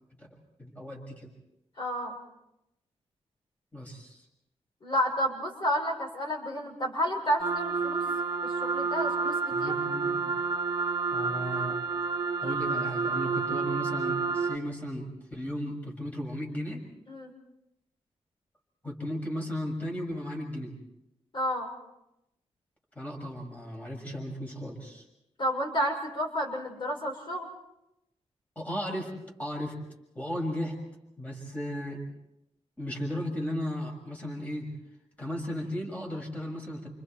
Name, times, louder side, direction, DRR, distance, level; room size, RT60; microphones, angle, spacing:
voice 1, 0.6-1.3 3.7-4.2 9.5-10.4 11.1-11.8 12.4-16.9 18.8-20.7 22.9-25.0 28.5-29.1 29.4-29.8 30.1-30.7 31.2-32.0 32.8-34.7 35.2-36.9, equal, 15° left, 0 dB, 6.6 m, -35 dB
voice 2, 1.8-2.2 4.8-8.0 8.4-9.7 17.1-17.3 21.3-21.7 25.4-27.5, equal, 45° left, 1 dB, 6.6 m, -30 dB
sound 1, 7.4-14.6, right 4 dB, 40° right, 1.7 m, -29 dB
29.5 x 29.0 x 4.6 m, 0.85 s
wide cardioid pair, 140°, 11 cm